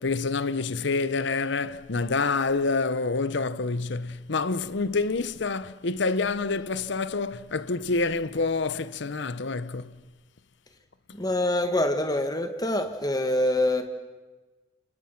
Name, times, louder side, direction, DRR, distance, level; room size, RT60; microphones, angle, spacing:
voice 1, 0.0-9.9, left 3 dB, 65° left, 0.9 m, -27 dB
voice 2, 11.1-13.8, left 1 dB, 20° left, 1.7 m, -25 dB
30.0 x 29.0 x 6.0 m
head